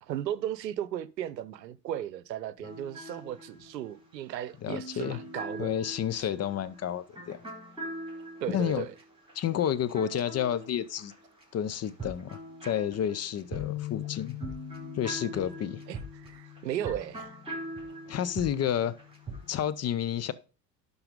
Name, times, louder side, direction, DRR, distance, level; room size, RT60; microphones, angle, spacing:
voice 1, 0.0-5.8 6.2-6.3 8.4-8.9 15.9-17.3, right 11 dB, 85° right, 0.7 m, -36 dB
sound 1, 2.6-11.4 11.7-19.5, right 1 dB, 10° right, 4.8 m, -43 dB
voice 2, 4.6-5.2 5.6-7.4 8.5-8.9 9.3-11.1 11.5-14.4 14.9-15.8 18.1-19.0 19.5-20.3, left 9 dB, 30° left, 0.7 m, -30 dB
sound 2, 13.5-19.8, left 17 dB, 65° left, 0.7 m, -43 dB
11.5 x 4.0 x 5.2 m
hypercardioid pair, 70°, 49 cm